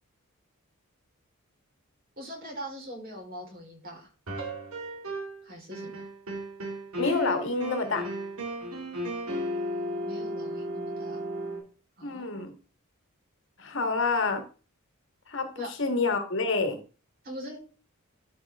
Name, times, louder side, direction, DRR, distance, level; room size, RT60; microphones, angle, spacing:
voice 1, 2.2-4.1 5.4-6.0 10.0-11.2 12.0-12.5 15.6-15.7 17.2-17.6, equal, 45° right, 0 dB, 4.0 m, -42 dB
sound 1, 4.3-5.4 5.7-11.6, equal, 85° right, 2.5 m, -34 dB
voice 2, 7.0-8.1 12.0-12.5 13.6-14.4 15.3-16.8, left 3 dB, 60° left, 6 dB, 1.5 m, -28 dB
12.0 x 5.6 x 3.5 m, 0.35 s
head